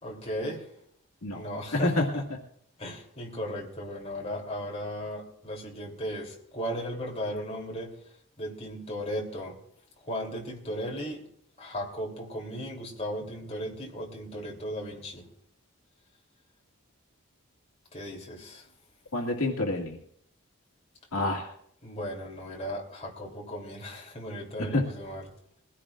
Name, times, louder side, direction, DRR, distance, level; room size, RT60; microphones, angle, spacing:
voice 1, 0.0-0.7 1.3-2.3 2.8-7.9 8.4-9.5 10.0-11.2 11.6-15.3 17.9-18.7 21.8-25.3, equal, 30° left, 3.2 m, -36 dB
voice 2, 1.7-2.1 19.1-20.0 21.1-21.5 24.6-24.9, left 2 dB, 70° left, 2.2 m, -27 dB
22.0 x 16.0 x 2.5 m
head